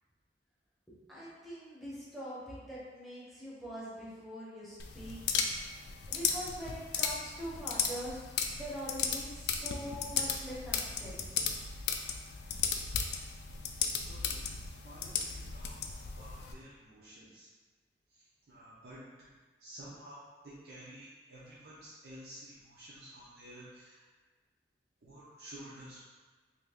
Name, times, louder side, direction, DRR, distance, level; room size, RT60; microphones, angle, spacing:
voice 1, 0.9-5.2 6.1-8.2 8.5-11.3, equal, ahead, -8 dB, 0.8 m, -43 dB
sound 1, 4.8-16.5, left 6 dB, 65° left, 0.3 m, -35 dB
voice 2, 14.0-14.4 14.8-15.8 16.2-17.5 18.1-19.3 19.6-24.0 25.0-26.0, right 1 dB, 60° right, -8 dB, 0.6 m, -51 dB
2.8 x 2.7 x 3.4 m, 1.3 s
head